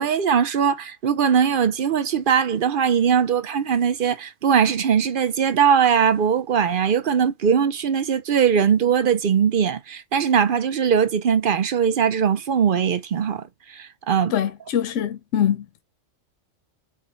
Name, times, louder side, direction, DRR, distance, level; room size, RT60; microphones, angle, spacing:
voice 1, 0.0-13.4 13.7-14.3, right 7 dB, 55° right, 0.7 m, -20 dB
voice 2, 14.3-15.8, left 9 dB, 70° left, 1.0 m, -24 dB
5.0 x 2.2 x 4.0 m
omnidirectional pair, 1.3 m